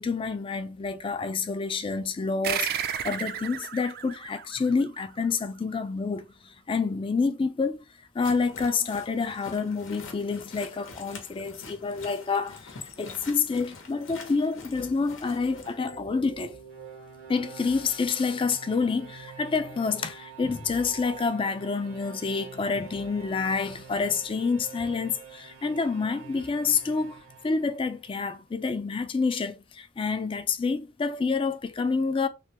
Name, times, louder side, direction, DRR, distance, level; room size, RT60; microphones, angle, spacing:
voice 1, 0.0-2.7 3.0-7.9 8.1-16.6 17.3-32.3, left 4 dB, 25° left, 0.3 m, -28 dB
sound 1, 2.4-5.4, right 8 dB, 50° right, 0.4 m, -33 dB
sound 2, 8.2-15.7, left 4 dB, 85° left, 0.8 m, -46 dB
sound 3, 15.2-28.3, right 6 dB, 75° right, 0.8 m, -47 dB
3.2 x 2.2 x 2.8 m
head